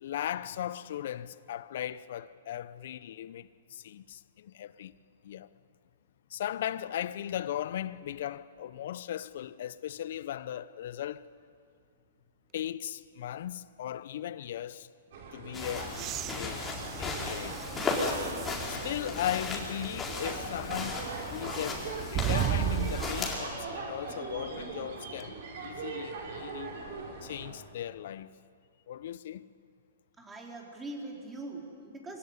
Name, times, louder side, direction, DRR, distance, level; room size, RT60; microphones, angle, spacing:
voice 1, 0.0-4.9 5.2-5.5 6.3-11.3 12.5-14.9 15.3-15.9 16.4-16.6 17.0-17.6 18.7-21.8 22.1-26.7 27.2-28.3 28.9-29.5, left 11 dB, 60° left, 0.8 m, -37 dB
sound 1, 15.1-27.5, right 4 dB, 60° right, 4.9 m, -41 dB
sound 2, 15.5-23.3, left 3 dB, 15° left, 4.5 m, -36 dB
sound 3, 15.9-18.7 19.3-19.4 22.1-23.4 25.2-25.3, right 13 dB, 30° right, 0.5 m, -34 dB
voice 2, 30.2-32.2, right 2 dB, 10° right, 4.3 m, -42 dB
25.0 x 16.5 x 9.8 m
hypercardioid pair, 130°, 0 cm